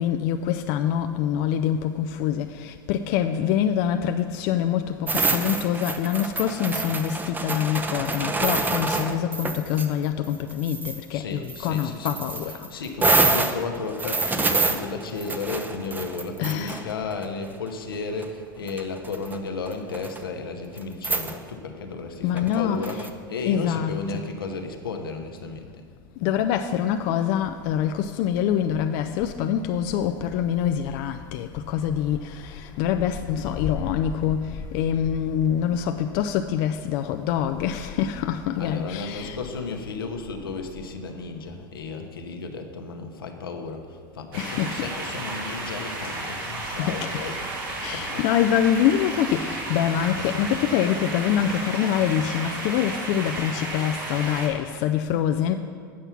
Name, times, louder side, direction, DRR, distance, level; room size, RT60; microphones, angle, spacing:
voice 1, 0.0-12.7 16.4-16.9 22.2-23.1 23.5-24.2 26.2-39.4 44.4-44.8 46.8-47.1 47.8-55.5, left 9 dB, 60° left, 0.4 m, -25 dB
sound 1, 5.1-9.9 10.2-11.0 11.5-17.2 18.2-18.3 18.7-19.4 19.7-20.2 20.8-20.9 21.0-21.4 22.4-23.1, right 3 dB, 15° right, 0.6 m, -26 dB
voice 2, 11.1-25.7 38.5-47.4 47.9-48.3, left 4 dB, 90° left, 0.8 m, -34 dB
Wind, 27.4-42.3, left 5 dB, 35° left, 1.0 m, -42 dB
sound 2, 44.3-54.5, right 2 dB, 75° right, 2.3 m, -33 dB
8.5 x 5.5 x 5.9 m
hypercardioid pair, 90°, 12 cm